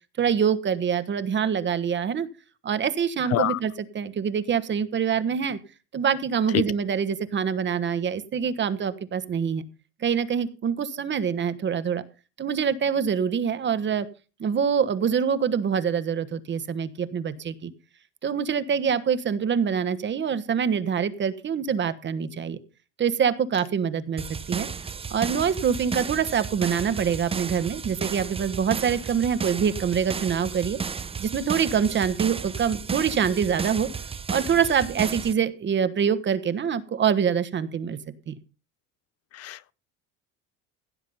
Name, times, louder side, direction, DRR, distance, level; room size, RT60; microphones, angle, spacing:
voice 1, 0.2-2.3 2.6-5.6 5.9-9.6 10.0-12.0 12.4-14.1 14.4-17.7 18.2-22.6 23.0-24.7 25.1-30.8 31.2-33.9 34.3-38.0 38.3-38.4, right 7 dB, 35° right, 1.3 m, -25 dB
sound 1, 24.2-35.3, right 5 dB, 15° right, 0.7 m, -33 dB
voice 2, 39.4-39.7, left 13 dB, 45° left, 0.6 m, -25 dB
16.0 x 7.4 x 5.5 m
cardioid pair, 115°, 34 cm